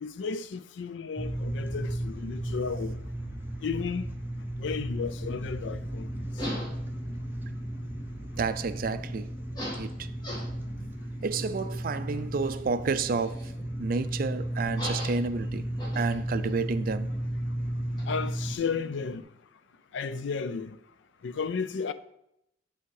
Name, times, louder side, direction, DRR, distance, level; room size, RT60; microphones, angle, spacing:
voice 1, 0.0-3.0 3.6-4.1 4.6-6.3 18.1-19.2 19.9-20.8 21.2-21.9, left 5 dB, 75° left, 0.4 m, -33 dB
sound 1, 1.2-18.6, right 1 dB, 10° right, 0.7 m, -34 dB
sound 2, 5.0-19.2, equal, 25° left, 1.7 m, -43 dB
voice 2, 8.4-9.3 9.8-10.1 11.2-13.5 13.8-15.7 16.0-17.1, right 4 dB, 50° right, 0.4 m, -30 dB
8.2 x 3.6 x 4.7 m
head